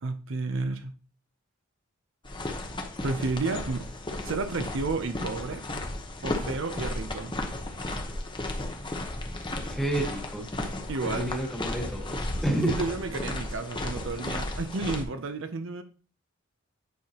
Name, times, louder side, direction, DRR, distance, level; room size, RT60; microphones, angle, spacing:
voice 1, 0.0-0.9 3.0-3.9 4.2-5.6 6.2-7.3 10.9-11.3 12.6-15.8, right 3 dB, 60° right, 9 dB, 0.6 m, -31 dB
sound 1, 2.3-15.0, left 1 dB, 20° left, 0.9 m, -34 dB
voice 2, 9.6-10.5 11.0-12.7, right 1 dB, ahead, 1 dB, 1.3 m, -30 dB
9.4 x 5.7 x 2.9 m, 0.38 s
head